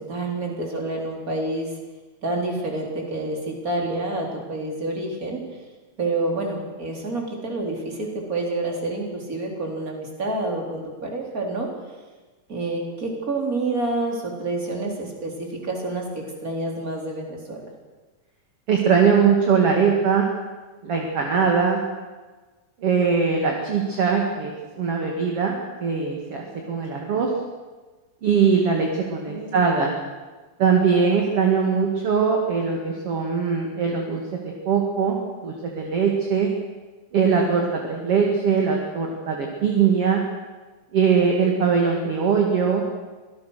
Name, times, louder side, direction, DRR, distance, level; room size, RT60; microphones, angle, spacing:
voice 1, 0.1-1.7 2.2-5.4 6.0-11.7 12.5-17.6 29.3-29.6, right 2 dB, 20° right, 1 dB, 3.9 m, -28 dB
voice 2, 18.7-20.3 20.8-21.8 22.8-24.5 24.8-25.5 25.8-27.3 28.2-29.9 30.6-35.2 35.4-36.5 37.1-40.2 40.9-42.8, right 6 dB, 40° right, 1 dB, 2.6 m, -21 dB
25.5 x 18.5 x 6.5 m, 1.3 s
omnidirectional pair, 4.9 m